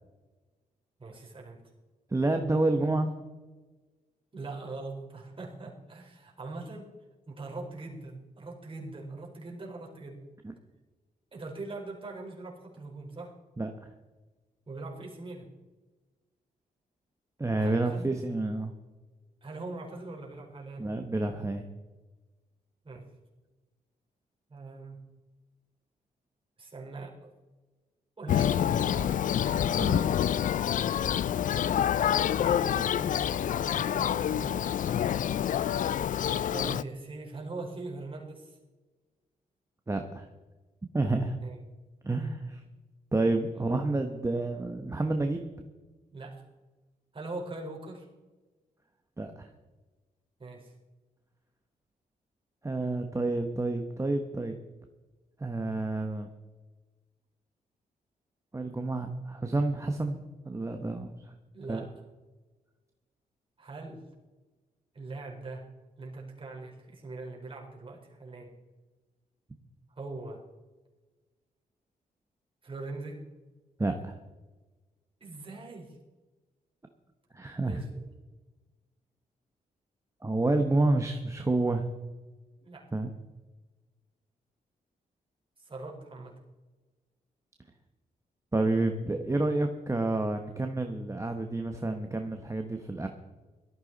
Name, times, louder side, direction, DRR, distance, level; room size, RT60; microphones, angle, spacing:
voice 1, 1.0-1.6 4.3-6.9 7.3-10.2 11.3-13.3 14.7-15.5 17.6-18.1 19.4-20.9 22.8-23.1 24.5-25.0 26.6-27.3 28.2-29.1 32.1-34.7 36.5-38.6 41.4-41.6 43.5-43.7 46.1-46.5 47.1-48.1 50.4-50.7 61.5-61.9 63.6-64.0 64.9-65.7 66.0-68.5 70.0-70.4 72.6-73.2 75.2-76.0 77.6-78.1 82.6-82.9 85.6-86.3, right 3 dB, 35° right, -2 dB, 4.5 m, -42 dB
voice 2, 2.1-3.1 10.4-10.5 13.6-13.7 17.4-18.7 20.8-21.6 29.8-30.0 39.9-40.3 40.9-41.4 42.0-42.6 43.1-45.5 49.2-49.5 52.6-54.5 55.4-56.3 58.5-60.2 60.4-61.1 61.7-61.8 73.8-74.2 77.3-77.8 80.2-81.9 82.9-83.1 88.5-93.1, right 2 dB, 20° right, 5 dB, 1.2 m, -29 dB
Thunder, 28.3-36.8, left 10 dB, 60° left, 0.4 m, -27 dB
17.0 x 13.5 x 4.1 m, 1.2 s
cardioid pair, 80°, 15 cm